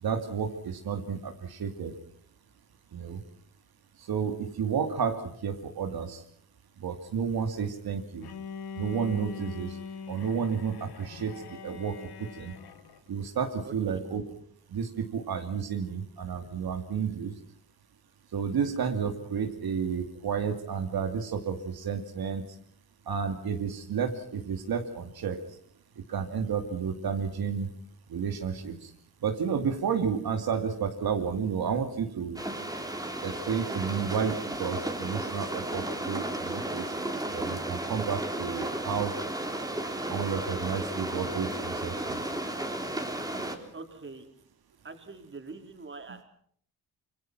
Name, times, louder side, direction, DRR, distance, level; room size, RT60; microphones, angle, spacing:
voice 1, 0.0-1.9 2.9-3.2 4.1-6.2 6.8-8.3 8.8-9.8 10.1-12.5 13.1-14.2 14.7-17.3 18.3-22.4 23.1-25.4 26.1-27.7 28.1-28.9 29.2-32.4 33.2-36.8 37.3-39.1 40.1-42.2, right 6 dB, 75° right, 4 dB, 2.6 m, -31 dB
Bowed string instrument, 8.2-13.1, left 6 dB, 80° left, 1.7 m, -42 dB
voice 2, 13.6-14.0 43.7-44.3 44.8-46.2, right 3 dB, 30° right, 4 dB, 4.5 m, -44 dB
sound 1, 32.4-43.6, right 1 dB, 10° right, 3.5 m, -34 dB
26.5 x 25.0 x 6.1 m, 0.62 s
wide cardioid pair, 125°, 37 cm